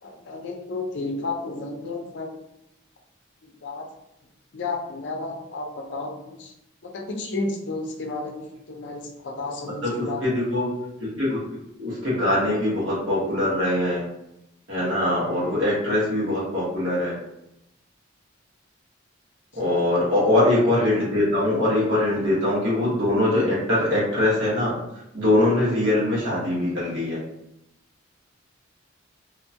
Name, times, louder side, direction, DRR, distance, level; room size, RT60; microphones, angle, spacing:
voice 1, 0.0-2.3 3.4-3.9 4.5-6.5 6.8-10.2 19.7-19.9, left 3 dB, 60° left, 1 dB, 0.5 m, -32 dB
voice 2, 9.8-10.7 11.0-11.4 11.8-14.0 14.7-17.1 19.6-24.7 25.1-27.2, left 1 dB, 70° right, -7 dB, 1.3 m, -22 dB
2.8 x 2.2 x 2.7 m, 0.85 s
head